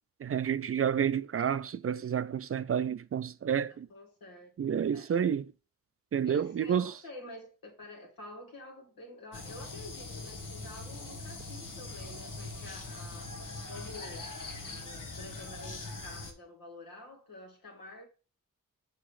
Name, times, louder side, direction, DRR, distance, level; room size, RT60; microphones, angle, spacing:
voice 1, 0.2-3.9 4.6-5.5 6.1-6.9, right 8 dB, 45° right, 0.4 m, -30 dB
voice 2, 3.7-4.5 4.9-5.3 6.2-13.3 13.7-14.3 14.8-18.0, left 2 dB, 85° left, 2.2 m, -48 dB
sound 1, 9.3-16.3, left 2 dB, 65° left, 1.5 m, -42 dB
6.2 x 3.5 x 4.7 m
cardioid pair, 45°, 34 cm